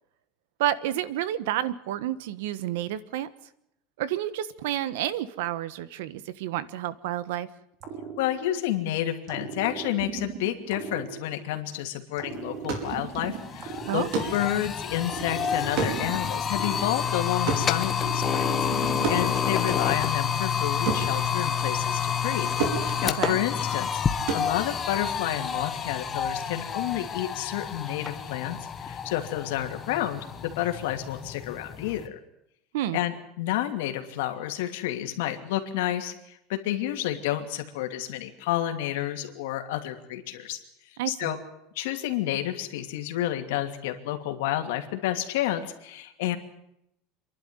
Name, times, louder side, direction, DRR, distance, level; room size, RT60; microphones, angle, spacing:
voice 1, 0.6-3.3 4.0-7.5 13.9-14.1 23.0-23.4 32.7-33.0 41.0-41.4, right 12 dB, 75° right, 16 dB, 1.3 m, -30 dB
sound 1, 7.8-8.8 9.3-11.7 12.2-14.6 15.1-17.5 18.0-19.4, right 7 dB, 35° right, 3.2 m, -38 dB
voice 2, 8.2-14.0 14.3-18.5 18.8-22.5 22.8-32.2 32.9-40.6 41.1-41.4 41.7-46.4, left 13 dB, 75° left, 6 dB, 2.7 m, -30 dB
sound 2, 12.4-22.3 22.6-25.6, right 5 dB, 55° right, 5.0 m, -34 dB
sound 3, 12.6-12.7 13.1-32.1, left 7 dB, 15° left, 1.0 m, -29 dB
27.5 x 11.5 x 9.7 m, 0.80 s
cardioid pair, 180°, 0 cm